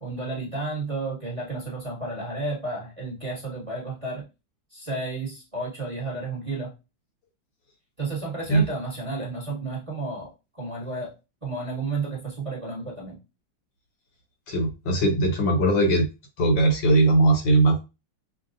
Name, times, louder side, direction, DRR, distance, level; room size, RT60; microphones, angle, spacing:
voice 1, 0.0-4.2 4.7-6.7 8.0-11.1 11.4-13.2, right 3 dB, 20° right, -5 dB, 1.0 m, -32 dB
voice 2, 14.5-16.1 16.4-17.8, right 2 dB, 70° left, 2 dB, 1.7 m, -20 dB
5.4 x 2.3 x 2.6 m, 0.27 s
omnidirectional pair, 2.2 m